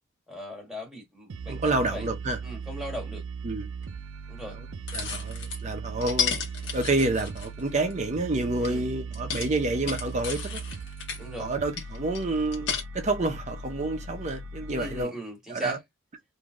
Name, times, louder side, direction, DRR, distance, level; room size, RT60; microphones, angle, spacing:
voice 1, 0.3-2.1 2.4-3.2 4.3-4.6 8.6-8.9 11.2-11.5 14.7-15.8, left 1 dB, 5° right, 1.4 m, -39 dB
sound 1, 1.3-15.0, right 4 dB, 80° right, 0.4 m, -38 dB
voice 2, 1.5-2.4 3.4-3.7 4.9-6.3 6.7-10.6 11.4-15.1 15.5-15.8, right 2 dB, 35° right, 0.6 m, -28 dB
sound 2, 3.8-3.9 4.9-5.6 6.0-7.9 8.6-8.7 9.1-11.2 11.8-12.8, left 6 dB, 60° left, 1.1 m, -33 dB
3.3 x 2.7 x 2.4 m
head